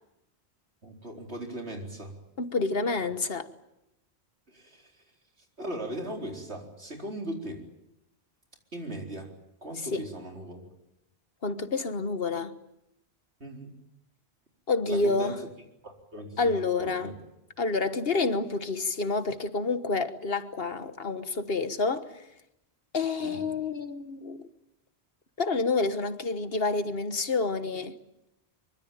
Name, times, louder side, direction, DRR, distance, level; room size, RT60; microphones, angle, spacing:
voice 1, 0.8-2.1 4.5-5.0 5.6-7.7 8.7-9.3 9.6-10.7 13.4-13.7 14.9-15.5 15.8-17.2 23.2-23.5, right 1 dB, 90° right, 4.6 m, -39 dB
voice 2, 2.4-3.5 9.9-10.0 11.4-12.6 14.7-15.4 16.4-17.1 17.6-22.1 22.9-24.4 25.4-27.9, left 3 dB, 65° left, 1.6 m, -28 dB
24.5 x 24.0 x 8.9 m
omnidirectional pair, 1.1 m